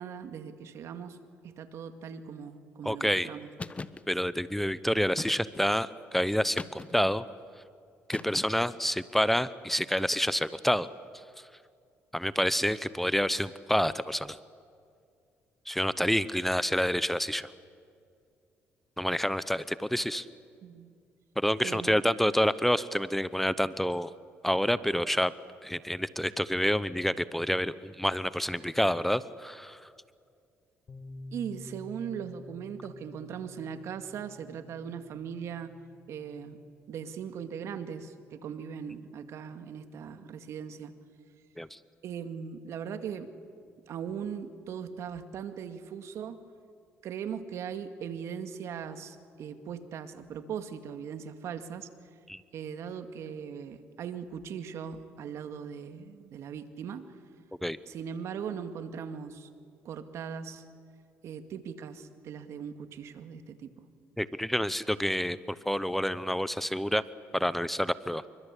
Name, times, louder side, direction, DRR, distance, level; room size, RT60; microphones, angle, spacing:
voice 1, 0.0-3.5 20.6-20.9 21.6-22.0 31.3-35.8 36.1-36.6 36.9-40.9 42.0-43.3 43.9-46.4 47.0-51.9 52.5-57.1 57.9-59.5 59.8-60.6 61.2-63.8, right 7 dB, 65° right, 9 dB, 2.2 m, -39 dB
voice 2, 2.8-3.3 4.1-7.2 8.1-10.9 11.4-11.5 12.1-14.4 15.7-17.5 19.0-20.3 21.4-24.1 24.4-25.3 25.6-29.9 41.6-41.8 52.3-52.4 57.6-57.8 64.2-67.0 67.3-68.3, equal, 5° left, 16 dB, 0.9 m, -28 dB
sound 1, 3.6-4.0 5.2-5.7 6.6-7.2 8.1-8.8, left 3 dB, 25° left, 1.2 m, -40 dB
sound 2, 30.9-38.6, left 2 dB, 40° left, 4.2 m, -51 dB
28.0 x 24.5 x 8.4 m, 2.3 s
supercardioid pair, 75°, 5 cm